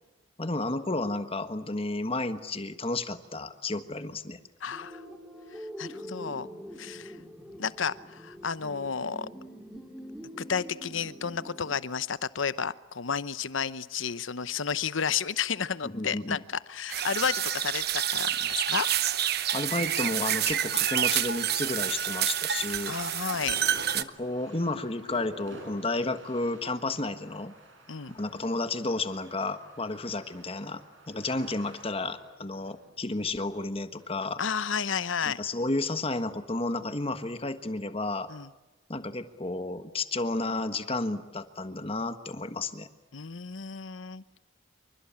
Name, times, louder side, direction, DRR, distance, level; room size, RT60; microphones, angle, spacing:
voice 1, 0.4-4.4 15.8-16.4 19.5-22.9 23.9-27.5 28.1-30.8 31.1-34.4 35.2-38.3 38.9-42.9, left 2 dB, 30° left, 10 dB, 1.4 m, -32 dB
voice 2, 4.6-5.0 5.5-6.5 6.8-7.2 7.6-9.3 10.4-18.9 19.1-19.3 22.9-23.6 27.9-28.2 34.4-35.4 38.3-38.5 43.1-44.2, left 6 dB, 80° left, 16 dB, 0.9 m, -32 dB
sound 1, 4.7-11.8, equal, 5° right, 3.0 m, -44 dB
sound 2, 16.9-24.0, right 10 dB, 55° right, 1.0 m, -28 dB
sound 3, 22.6-34.1, equal, 70° right, 7.9 m, -51 dB
27.0 x 24.0 x 8.8 m, 1.1 s
head